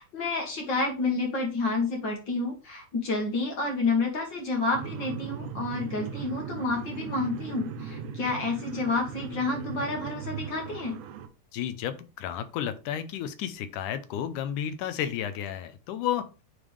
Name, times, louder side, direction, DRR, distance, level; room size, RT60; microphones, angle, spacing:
voice 1, 0.0-11.0, left 3 dB, 50° left, 2 dB, 1.4 m, -29 dB
sound 1, 4.7-11.3, right 6 dB, 85° right, 2.1 m, -38 dB
voice 2, 11.5-16.3, left 10 dB, 90° left, 11 dB, 2.2 m, -32 dB
9.1 x 3.5 x 3.3 m, 0.31 s
omnidirectional pair, 3.6 m